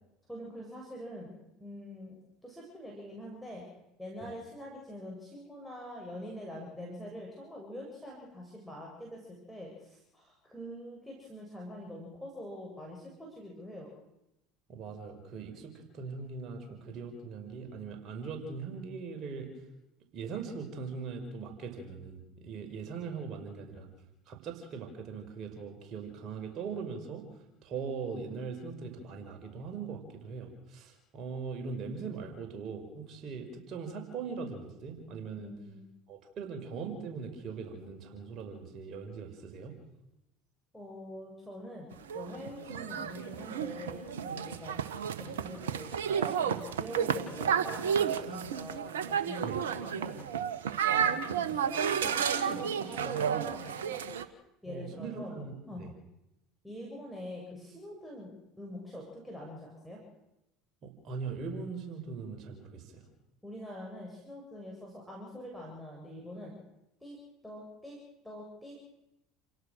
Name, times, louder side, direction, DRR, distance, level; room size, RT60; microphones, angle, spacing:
voice 1, 0.3-3.6 4.0-13.9 35.3-35.8 40.7-44.8 45.1-48.8 49.1-50.2 50.9-54.0 54.6-55.4 55.7-55.8 56.6-60.0 63.4-66.5 67.0-67.2 67.4-68.0 68.2-68.8, left 1 dB, ahead, -2 dB, 7.5 m, -45 dB
voice 2, 14.7-19.5 20.1-23.9 24.3-27.2 27.6-35.5 36.1-39.8 49.4-49.6 54.6-55.9 60.8-63.0, right 5 dB, 45° right, 4 dB, 5.6 m, -40 dB
sound 1, 41.9-54.3, right 8 dB, 70° right, 1.5 m, -32 dB
29.5 x 17.5 x 6.6 m, 0.89 s
figure-of-eight pair, 70°, 0 cm